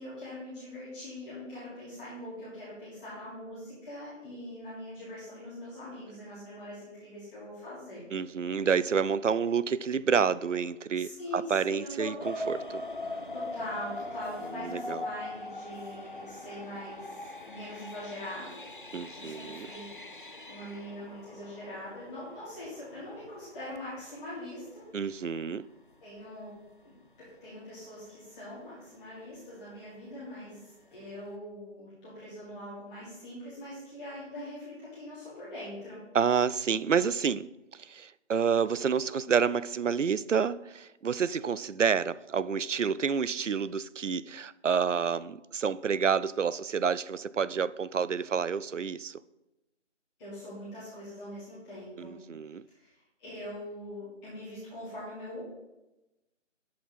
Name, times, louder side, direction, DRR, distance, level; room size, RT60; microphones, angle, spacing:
voice 1, 0.0-8.0 10.9-12.1 13.3-18.6 19.1-24.8 26.0-26.5 26.8-26.9 27.4-36.0 50.2-52.2 52.7-52.9 53.2-55.4, left 1 dB, 5° left, 1.6 m, -42 dB
voice 2, 8.1-12.8 14.5-15.0 18.9-19.7 24.9-25.7 36.1-37.5 37.7-49.2 52.0-52.6, right 6 dB, 75° right, 0.6 m, -29 dB
sound 1, 12.2-24.8 25.4-25.5 26.0-26.2 26.6-26.7, left 1 dB, 45° left, 0.5 m, -41 dB
10.5 x 7.7 x 4.2 m
figure-of-eight pair, 165°, 37 cm